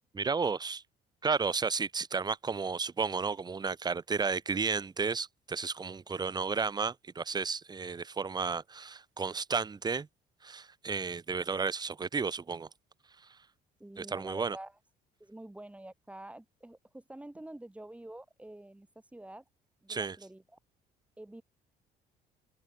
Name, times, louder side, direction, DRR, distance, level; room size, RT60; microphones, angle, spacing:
voice 1, 0.1-0.8 1.2-10.1 10.4-12.7 14.0-14.6 19.9-20.2, right 5 dB, 25° right, 1.4 m, -33 dB
voice 2, 13.8-14.7 15.2-19.4 19.8-20.4 21.2-21.4, right 1 dB, 5° right, 4.4 m, -47 dB
open air
cardioid pair, 110°, 17 cm